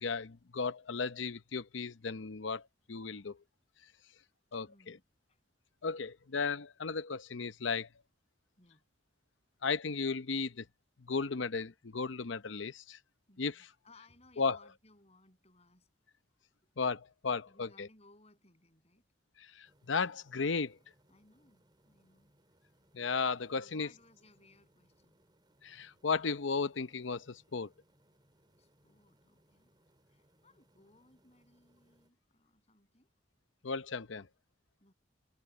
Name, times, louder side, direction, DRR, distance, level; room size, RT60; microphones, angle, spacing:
voice 1, 0.0-2.6 2.9-3.4 4.5-5.0 5.8-7.9 9.6-10.6 11.0-13.0 13.4-13.7 14.4-14.6 16.8-17.9 19.4-20.8 22.9-23.9 25.6-27.7 33.6-34.3, left 4 dB, 75° left, 0.8 m, -35 dB
voice 2, 4.5-5.4 8.6-8.8 13.3-15.9 17.5-19.0 21.1-22.3 23.5-25.1 28.6-29.7 30.1-33.1 34.8-34.9, left 2 dB, 35° left, 7.5 m, -64 dB
sound 1, 19.6-32.1, right 1 dB, 25° right, 5.8 m, -71 dB
head